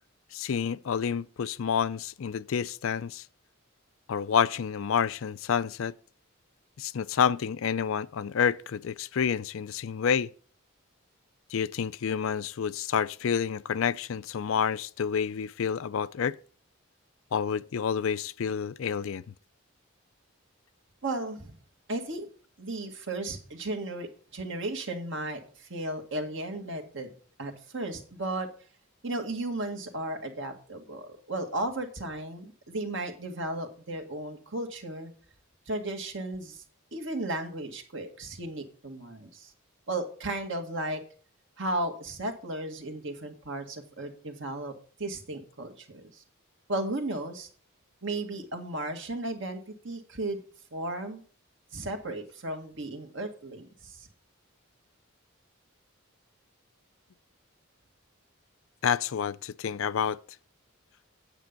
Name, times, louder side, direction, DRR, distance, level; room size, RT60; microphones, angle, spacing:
voice 1, 0.3-3.2 4.1-5.9 6.8-10.3 11.5-16.4 17.3-19.2 58.8-60.2, left 7 dB, 70° left, 0.4 m, -29 dB
voice 2, 21.0-21.6 21.9-22.3 22.6-27.1 27.4-28.5 29.0-35.1 35.7-36.6 36.9-39.5 39.9-41.0 41.6-44.7 45.0-46.2 46.7-47.5 48.0-50.4 50.7-51.2 51.7-54.1, right 2 dB, 60° right, 1.8 m, -35 dB
9.0 x 7.0 x 5.2 m
head